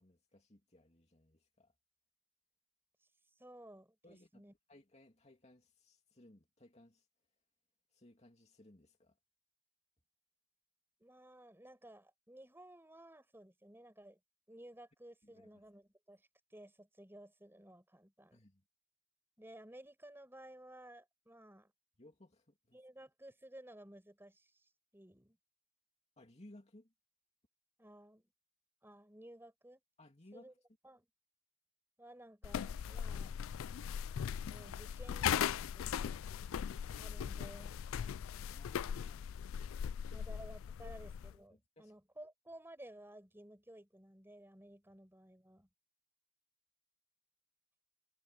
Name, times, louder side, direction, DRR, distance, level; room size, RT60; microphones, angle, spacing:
voice 1, 0.0-1.7 4.0-4.4 4.7-7.1 7.9-9.2 15.2-15.5 18.3-18.6 22.0-22.8 26.2-26.9 30.0-30.6 38.5-39.3 40.1-40.3 40.8-40.9 41.5-41.9, left 1 dB, 30° left, 2.7 m, -61 dB
voice 2, 3.4-4.5 11.0-14.2 14.5-18.4 19.4-21.7 22.7-25.4 27.8-28.3 28.8-29.8 30.3-30.5 30.8-31.1 32.0-33.4 34.5-36.3 36.9-37.8 40.1-45.7, right 1 dB, 10° right, 4.9 m, -56 dB
sound 1, 32.4-41.4, left 8 dB, 70° left, 0.3 m, -39 dB
head